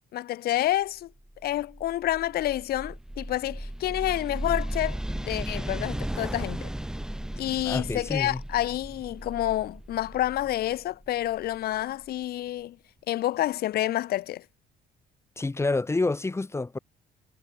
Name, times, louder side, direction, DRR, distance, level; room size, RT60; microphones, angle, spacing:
voice 1, 0.1-1.1 1.4-6.7 7.4-12.8 13.1-14.4, left 14 dB, 65° left, 1.3 m, -29 dB
sound 1, 1.3-12.0, right 1 dB, 5° right, 1.9 m, -36 dB
voice 2, 7.6-8.4 15.4-16.8, left 3 dB, 15° left, 2.2 m, -28 dB
cardioid pair, 110°, 17 cm